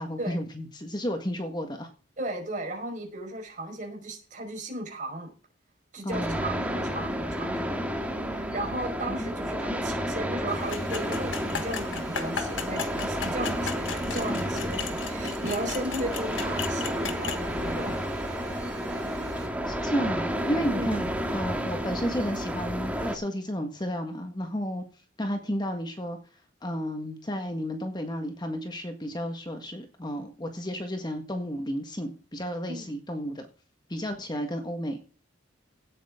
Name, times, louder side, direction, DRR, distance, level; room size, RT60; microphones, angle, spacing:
voice 1, 0.0-1.9 6.0-6.6 9.1-9.3 9.7-9.8 19.7-24.8 25.2-26.2 26.6-33.5 33.9-35.0, equal, 20° left, 1.6 m, -32 dB
voice 2, 2.2-5.3 5.9-7.8 8.3-18.0 20.7-21.1 32.7-32.9, right 1 dB, 40° right, 5.0 m, -35 dB
sound 1, 6.1-23.2, equal, 10° right, 1.8 m, -31 dB
sound 2, 10.5-19.5, right 1 dB, 70° right, 3.5 m, -46 dB
sound 3, 10.7-17.4, left 7 dB, 85° left, 1.5 m, -36 dB
17.0 x 8.7 x 3.7 m
head